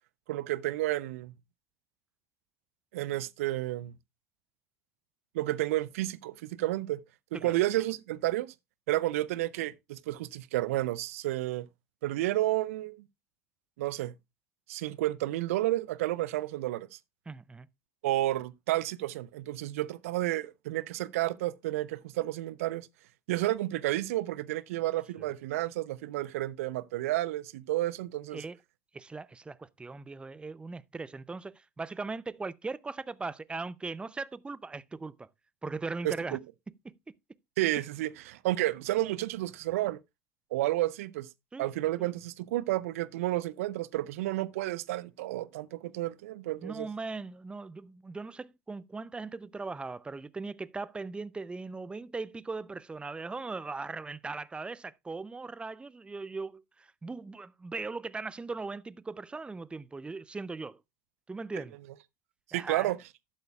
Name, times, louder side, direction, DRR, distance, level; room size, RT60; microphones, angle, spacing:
voice 1, 0.3-1.3 2.9-3.9 5.3-7.0 7.3-8.5 8.9-11.7 12.0-13.0 13.8-14.1 14.7-17.0 18.0-22.9 23.3-28.4 36.0-36.4 37.6-40.0 40.5-41.3 41.6-46.9 62.5-63.0, right 16 dB, 75° right, 0.4 m, -31 dB
voice 2, 17.3-17.7 25.2-25.3 28.3-28.6 28.9-35.3 35.6-36.4 36.7-37.2 37.7-37.8 41.5-41.7 42.0-42.1 46.6-60.8 61.3-61.8 62.5-62.9, right 3 dB, 15° right, 0.5 m, -39 dB
12.0 x 8.5 x 2.3 m
hypercardioid pair, 75°, 8 cm